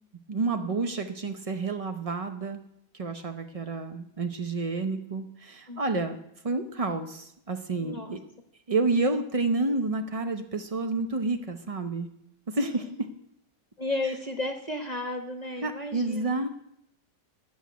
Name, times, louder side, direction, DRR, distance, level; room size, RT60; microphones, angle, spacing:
voice 1, 0.3-2.6 2.9-6.2 6.4-8.2 8.7-12.1 12.5-13.1 15.6-16.5, right 3 dB, 70° right, 6 dB, 0.3 m, -29 dB
voice 2, 5.7-6.1 7.8-8.1 12.6-12.8 13.8-16.4, left 2 dB, 25° left, 4 dB, 1.0 m, -34 dB
13.0 x 6.4 x 9.3 m, 0.77 s
omnidirectional pair, 1.9 m